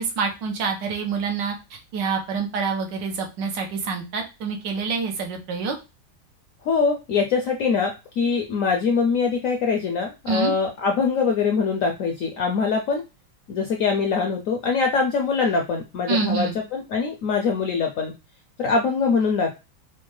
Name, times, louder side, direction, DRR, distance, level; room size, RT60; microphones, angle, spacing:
voice 1, 0.0-5.7 10.3-10.5 16.1-16.6, right 5 dB, 85° right, 2 dB, 1.5 m, -27 dB
voice 2, 6.6-13.0 13.5-18.1 18.6-19.5, left 5 dB, 75° left, 3 dB, 0.7 m, -23 dB
4.3 x 2.2 x 3.1 m, 0.27 s
omnidirectional pair, 1.9 m